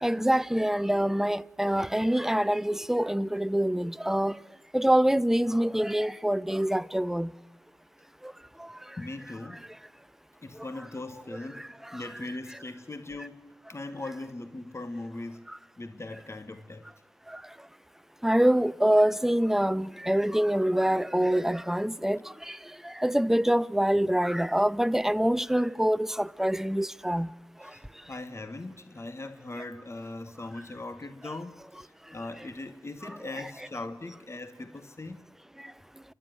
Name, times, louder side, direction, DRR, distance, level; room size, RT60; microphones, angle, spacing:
voice 1, 0.0-4.3 4.7-7.3 18.2-22.2 23.0-27.3, right 1 dB, 5° right, 0.6 m, -25 dB
voice 2, 9.0-9.6 10.4-11.6 11.9-13.4 13.7-15.4 15.8-16.9 27.6-27.8 28.1-31.5 32.1-35.2, left 2 dB, 35° left, 1.4 m, -39 dB
30.0 x 11.5 x 9.3 m
cardioid pair, 45°, 8 cm